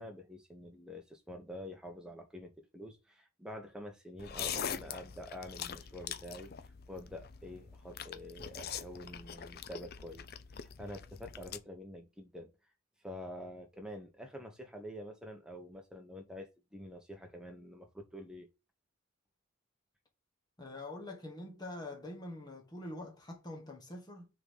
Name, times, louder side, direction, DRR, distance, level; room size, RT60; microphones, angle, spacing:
voice 1, 0.0-6.5 6.9-12.5 13.0-18.5, equal, 5° right, 1.1 m, -47 dB
sound 1, 4.2-11.6, left 8 dB, 45° left, 0.5 m, -43 dB
voice 2, 20.6-24.3, left 1 dB, 20° left, 1.4 m, -45 dB
6.6 x 3.9 x 5.7 m
head